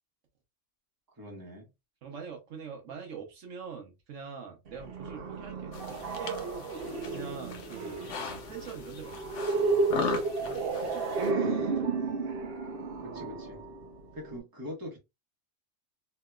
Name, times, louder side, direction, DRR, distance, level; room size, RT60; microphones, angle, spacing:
voice 1, 1.2-1.7 13.0-13.6 14.1-15.0, left 1 dB, 15° right, 1.1 m, -43 dB
voice 2, 2.0-6.7 7.1-9.3 10.0-11.9, right 6 dB, 75° right, 1.2 m, -44 dB
sound 1, 4.7-14.4, right 3 dB, 55° right, 0.9 m, -32 dB
sound 2, 5.7-11.3, left 5 dB, 70° left, 0.9 m, -39 dB
3.3 x 2.9 x 2.3 m
omnidirectional pair, 1.3 m